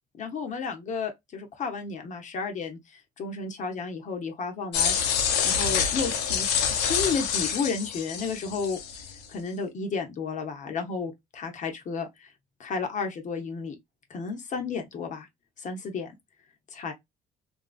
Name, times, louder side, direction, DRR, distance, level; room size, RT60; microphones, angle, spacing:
voice 1, 0.2-5.0 5.4-6.5 6.8-8.8 9.3-12.3 12.6-13.8 14.1-15.3 15.6-16.1 16.7-16.9, left 5 dB, 45° left, 0.8 m, -32 dB
sound 1, 4.7-9.2, left 7 dB, 85° left, 0.8 m, -27 dB
2.8 x 2.5 x 2.3 m
cardioid pair, 110°, 17 cm